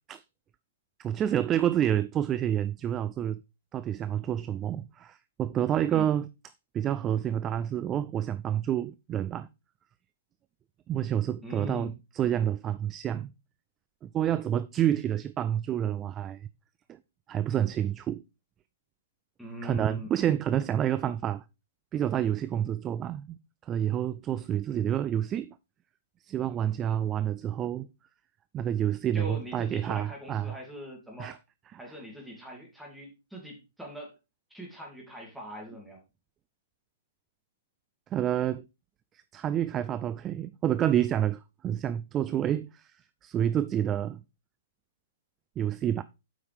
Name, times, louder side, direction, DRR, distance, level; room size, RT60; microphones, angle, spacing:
voice 1, 1.0-3.4 3.7-6.3 6.7-9.5 10.9-13.3 14.0-16.5 16.9-17.0 17.3-18.2 19.6-21.4 21.9-23.4 23.6-25.6 26.2-27.9 28.5-30.6 31.2-31.4 38.1-38.6 39.3-43.0 43.2-44.2 45.6-46.0, right 10 dB, 20° right, 0.3 m, -28 dB
voice 2, 11.4-11.9 19.4-20.1 29.1-31.4 31.8-34.2 34.5-36.0, equal, ahead, 2.6 m, -42 dB
8.1 x 5.6 x 3.5 m
hypercardioid pair, 145°, 0 cm